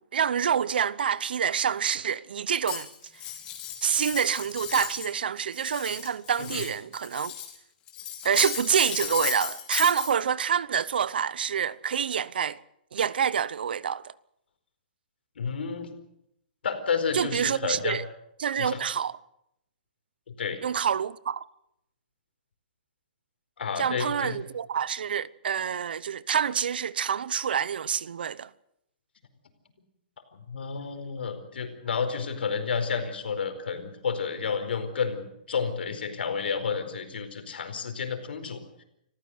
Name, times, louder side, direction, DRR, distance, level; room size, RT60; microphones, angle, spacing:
voice 1, 0.1-2.9 3.8-7.3 8.2-12.6 12.9-14.1 17.1-18.0 18.4-19.1 20.6-21.4 23.8-28.5, right 8 dB, 70° right, 0.8 m, -27 dB
Cutlery silverware, 2.7-5.1 5.4-7.6 7.9-10.1, left 10 dB, 15° left, 2.6 m, -35 dB
voice 2, 15.4-15.9 16.6-18.0 18.6-18.8 20.4-20.6 23.6-24.3 30.5-38.8, left 6 dB, 85° left, 4.6 m, -31 dB
26.0 x 15.0 x 8.0 m
hypercardioid pair, 180°, 5 cm